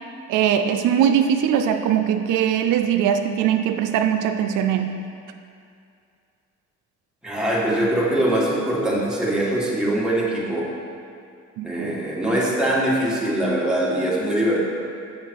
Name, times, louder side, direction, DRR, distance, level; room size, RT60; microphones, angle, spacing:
voice 1, 0.3-4.9 11.6-12.0, right 9 dB, 90° right, 6 dB, 0.5 m, -21 dB
voice 2, 7.2-10.7 11.6-14.6, right 1 dB, 5° right, -5 dB, 1.8 m, -22 dB
7.5 x 6.0 x 4.7 m, 2.4 s
cardioid pair, 90°, 30 cm